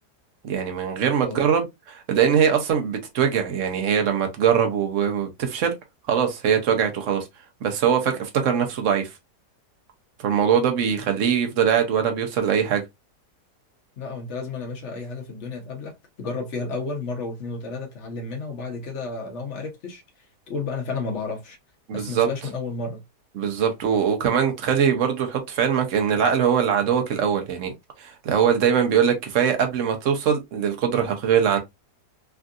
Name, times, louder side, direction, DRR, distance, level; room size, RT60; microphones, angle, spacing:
voice 1, 0.4-5.7 6.1-7.3 7.6-9.1 10.2-12.8 21.9-22.3 23.4-27.7 28.0-31.6, right 8 dB, 60° right, 0.9 m, -22 dB
voice 2, 14.0-20.0 20.5-21.6 21.9-23.0, left 3 dB, 50° left, 1.0 m, -32 dB
3.5 x 2.5 x 2.3 m
omnidirectional pair, 1.8 m